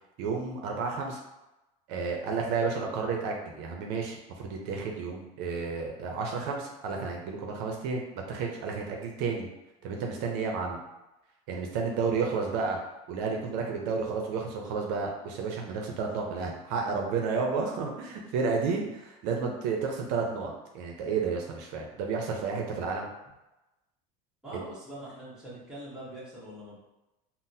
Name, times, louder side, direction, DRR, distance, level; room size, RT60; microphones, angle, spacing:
voice 1, 0.2-1.2 1.9-8.0 8.3-9.5 9.8-10.8 11.5-12.8 13.1-23.1 24.5-24.7, right 5 dB, 70° right, 1 dB, 0.5 m, -31 dB
voice 2, 24.4-26.8, right 1 dB, 5° right, -9 dB, 1.1 m, -44 dB
3.9 x 2.0 x 2.6 m, 0.98 s
cardioid pair, 145°, 18 cm